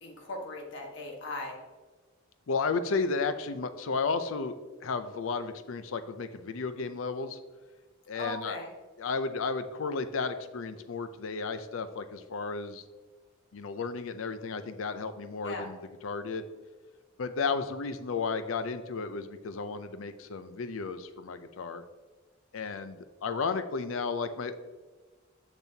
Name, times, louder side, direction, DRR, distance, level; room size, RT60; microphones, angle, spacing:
voice 1, 0.0-1.6 8.1-8.7 15.4-15.7, left 2 dB, 65° left, 0 dB, 1.4 m, -38 dB
voice 2, 2.5-7.4 8.1-8.6 9.0-12.8 13.5-16.4 17.2-21.8 22.5-24.6, left 4 dB, 80° left, 11 dB, 0.5 m, -33 dB
7.0 x 6.1 x 2.8 m, 1.3 s
head